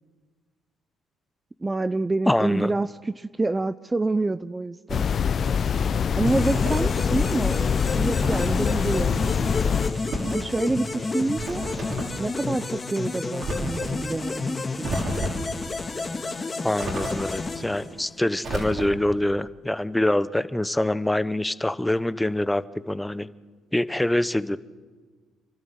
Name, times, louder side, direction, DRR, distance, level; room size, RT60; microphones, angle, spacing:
voice 1, 1.6-5.1 6.2-7.6 7.9-9.8 10.3-11.6 12.2-15.1, right 2 dB, 20° right, 15 dB, 0.5 m, -27 dB
voice 2, 2.3-2.7 16.6-23.3 23.7-24.6, left 1 dB, 10° left, 15 dB, 0.8 m, -25 dB
sound 1, 4.9-9.9, left 7 dB, 50° left, 0.6 m, -24 dB
sound 2, 6.3-18.3, left 3 dB, 30° left, 2.1 m, -31 dB
sound 3, 6.3-7.1 8.2-8.7 9.9-10.4 11.3-12.2 13.4-13.9 14.8-15.6 16.8-17.5 18.4-19.1, right 1 dB, 55° right, 5.6 m, -32 dB
28.5 x 12.5 x 7.7 m, 1.4 s
supercardioid pair, 70°, 0 cm